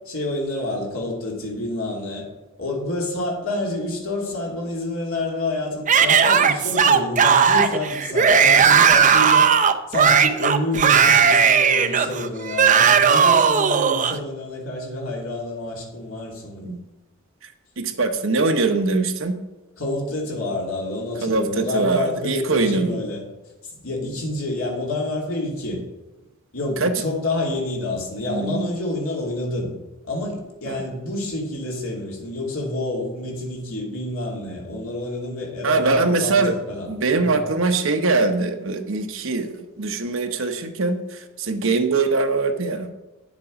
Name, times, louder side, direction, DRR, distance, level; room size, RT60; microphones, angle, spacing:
voice 1, 0.1-2.3 2.6-9.5 9.9-16.7 19.8-23.2 23.8-25.8 26.5-29.7 30.0-36.9 37.2-37.4, left 2 dB, 70° left, -2 dB, 2.8 m, -28 dB
Yell / Screaming, 5.9-14.2, right 6 dB, 35° right, 0.5 m, -16 dB
voice 2, 17.8-19.3 21.2-23.0 25.7-25.8 26.8-27.0 28.3-28.8 30.7-30.8 34.7-34.8 35.6-36.5 36.9-42.9, right 3 dB, 65° right, 6 dB, 1.0 m, -22 dB
9.9 x 7.4 x 5.2 m, 1.1 s
head